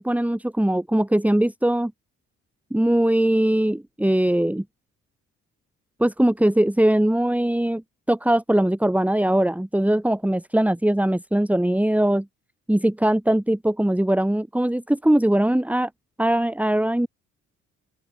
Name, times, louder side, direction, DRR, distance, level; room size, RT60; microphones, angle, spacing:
voice 1, 0.0-1.9 2.7-4.6 6.0-7.8 8.1-12.3 12.7-15.9 16.2-17.1, right 1 dB, 5° right, 3.5 m, -21 dB
open air
cardioid pair, 90°, 30 cm